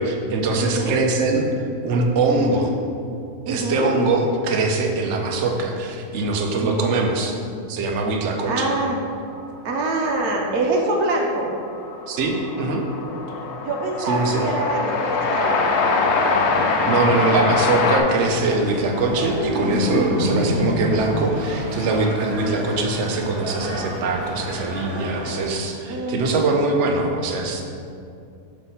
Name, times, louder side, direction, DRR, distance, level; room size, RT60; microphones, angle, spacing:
voice 1, 0.0-1.5 1.8-2.7 3.5-7.3 7.7-8.7 12.1-12.8 14.0-14.5 16.9-27.6, right 3 dB, 60° right, 2 dB, 0.8 m, -22 dB
voice 2, 0.6-1.0 2.3-2.7 3.5-3.9 6.6-7.0 8.5-9.0 9.6-11.5 13.6-15.6 20.1-20.4 25.9-26.4, right 2 dB, 75° right, 0 dB, 1.2 m, -25 dB
Train, 10.6-10.7 10.9-18.0, left 4 dB, 70° left, 0.6 m, -23 dB
sound 1, 18.1-25.5, right 1 dB, 20° right, 1.0 m, -33 dB
sound 2, 18.6-21.7 22.1-22.5, left 1 dB, 25° left, 1.1 m, -26 dB
6.0 x 3.3 x 5.5 m, 2.5 s
omnidirectional pair, 1.7 m